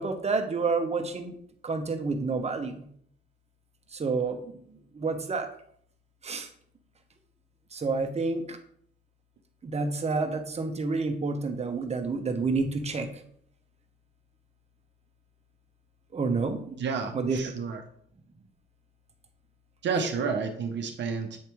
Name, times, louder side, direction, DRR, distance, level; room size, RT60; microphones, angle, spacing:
voice 1, 0.0-1.3 1.6-2.8 3.9-4.6 4.9-5.5 6.2-6.5 7.7-8.6 9.6-13.2 16.1-16.8 17.1-17.4, right 4 dB, 30° right, 6 dB, 1.1 m, -29 dB
voice 2, 16.8-17.8 19.8-21.4, right 5 dB, 65° right, 4 dB, 0.9 m, -30 dB
8.4 x 3.3 x 4.6 m, 0.64 s
cardioid pair, 90°, 20 cm